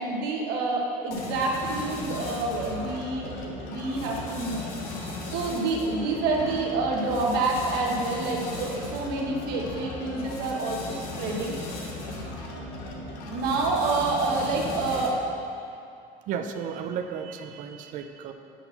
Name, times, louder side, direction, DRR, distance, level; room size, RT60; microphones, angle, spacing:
voice 1, 0.0-4.7 5.3-11.5 13.3-15.2, right 3 dB, 80° right, -1 dB, 1.3 m, -28 dB
sound 1, 1.1-15.3, left 2 dB, 80° left, 1.2 m, -37 dB
voice 2, 16.3-18.3, right 7 dB, 55° right, 6 dB, 0.6 m, -33 dB
9.1 x 4.3 x 5.7 m, 2.5 s
cardioid pair, 155°, 16 cm